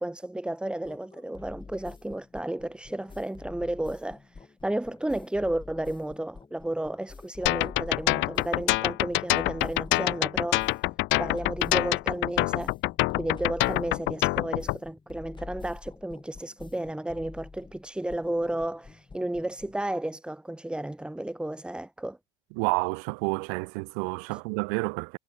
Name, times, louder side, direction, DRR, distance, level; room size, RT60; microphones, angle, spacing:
voice 1, 0.0-10.7 11.2-12.7 13.1-22.2 24.3-24.4, right 1 dB, 5° right, 0.8 m, -33 dB
sound 1, 0.8-19.8, left 4 dB, 15° left, 3.7 m, -46 dB
sound 2, 7.5-14.8, left 22 dB, 40° left, 0.4 m, -25 dB
voice 2, 22.5-25.2, right 40 dB or more, 60° right, 0.9 m, -29 dB
hypercardioid pair, 100°, 31 cm